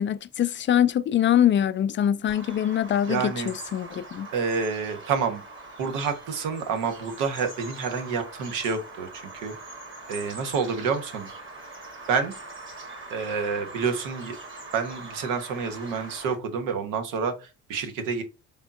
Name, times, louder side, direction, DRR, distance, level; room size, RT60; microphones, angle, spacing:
voice 1, 0.0-4.3, left 10 dB, 40° left, 0.4 m, -23 dB
Bird vocalization bird call bird song, 2.3-16.3, right 2 dB, 40° right, 1.9 m, -42 dB
voice 2, 3.1-3.5 4.3-5.4 5.8-9.5 10.1-11.3 12.1-12.3 13.1-14.3 14.7-18.2, right 5 dB, 80° right, 1.0 m, -28 dB
4.1 x 3.5 x 2.4 m
supercardioid pair, 75°, 31 cm